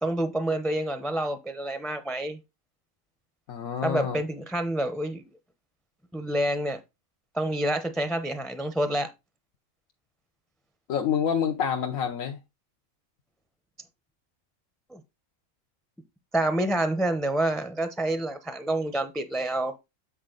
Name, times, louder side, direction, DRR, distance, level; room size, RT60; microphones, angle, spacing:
voice 1, 0.0-2.4 3.8-5.2 6.1-6.8 7.3-9.1 14.9-15.0 16.3-19.7, right 1 dB, ahead, 0.5 m, -28 dB
voice 2, 3.5-4.2 10.9-12.4, left 8 dB, 90° left, 1.2 m, -27 dB
8.5 x 4.8 x 3.8 m
omnidirectional pair, 1.4 m